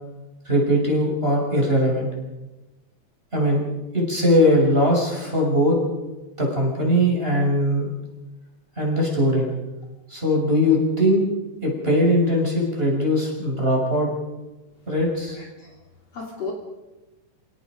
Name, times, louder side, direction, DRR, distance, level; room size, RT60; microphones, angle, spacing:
voice 1, 0.5-2.1 3.3-3.6 3.9-5.8 6.4-7.9 8.8-9.5 10.1-11.2 11.6-14.1 14.9-15.4, equal, 15° right, -1 dB, 6.9 m, -20 dB
voice 2, 15.3-15.8 16.1-16.5, left 4 dB, 50° left, 0 dB, 4.1 m, -34 dB
29.5 x 18.0 x 5.3 m, 1.1 s
omnidirectional pair, 3.7 m